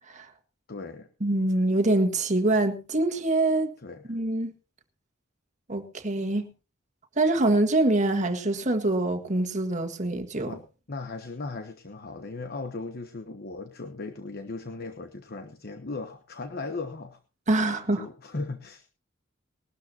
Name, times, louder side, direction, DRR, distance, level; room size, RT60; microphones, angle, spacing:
voice 1, 0.7-1.1 3.8-4.0 10.5-10.6 10.9-17.2 17.6-17.7 18.0-18.9, left 3 dB, 55° left, 1.1 m, -37 dB
voice 2, 1.2-3.7 4.1-4.5 5.7-6.5 7.2-10.5 17.5-18.0, right 2 dB, 40° right, 1.7 m, -24 dB
20.5 x 12.5 x 2.8 m
head